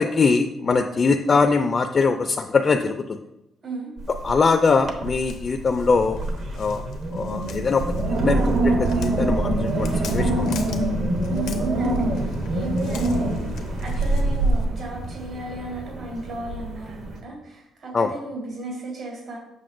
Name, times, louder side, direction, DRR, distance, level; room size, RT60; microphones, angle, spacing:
voice 1, 0.0-3.2 4.2-6.2 6.5-6.8 7.1-10.6 17.9-18.1, left 4 dB, 40° left, 6 dB, 0.4 m, -22 dB
Wind, 4.0-4.5 4.8-5.3 5.7-17.2, right 1 dB, 65° right, 0.9 m, -25 dB
Walk footsteps, 5.0-14.6, left 5 dB, 85° left, 0.7 m, -41 dB
voice 2, 11.3-13.5 13.8-19.4, right 2 dB, 80° right, -2 dB, 2.3 m, -35 dB
7.7 x 5.7 x 2.5 m, 0.90 s
cardioid pair, 90°, 0 cm